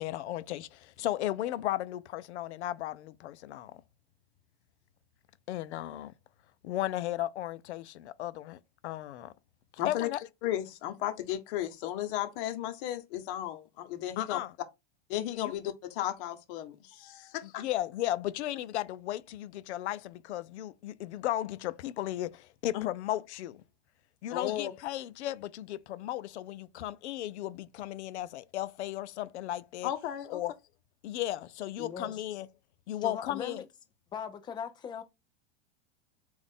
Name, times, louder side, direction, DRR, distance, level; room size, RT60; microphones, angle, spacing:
voice 1, 0.0-3.8 5.5-6.1 6.6-9.3 9.8-10.2 14.2-14.5 15.4-15.5 17.4-23.6 24.2-29.9 30.3-30.5 31.0-32.5 32.9-33.6, left 13 dB, 85° left, 0.5 m, -35 dB
voice 2, 9.8-10.1 10.4-14.4 15.1-17.6 22.7-22.9 24.3-24.7 29.8-30.4, left 12 dB, 55° left, 0.9 m, -34 dB
voice 3, 31.8-32.2 33.0-33.7 34.1-35.0, left 7 dB, 15° left, 0.4 m, -40 dB
3.8 x 2.5 x 3.6 m
supercardioid pair, 125°, 33 cm